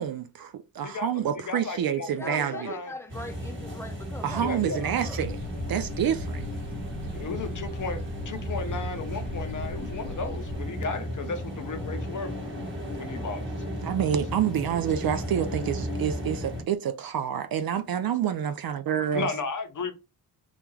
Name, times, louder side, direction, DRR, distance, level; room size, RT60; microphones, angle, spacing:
voice 1, 0.0-2.7 4.2-5.4 5.7-6.4 13.8-19.3, right 9 dB, 50° right, 0.4 m, -28 dB
voice 2, 0.8-2.9 4.3-4.8 7.1-8.0 8.3-12.4 12.9-13.4 19.1-19.9, left 4 dB, 40° left, 0.7 m, -34 dB
voice 3, 2.1-5.2, left 1 dB, 5° left, 0.6 m, -41 dB
sound 1, 3.1-16.6, equal, 25° right, 1.4 m, -34 dB
sound 2, 5.2-10.6, left 1 dB, 75° right, 1.1 m, -41 dB
2.3 x 2.3 x 3.1 m
supercardioid pair, 45°, 47 cm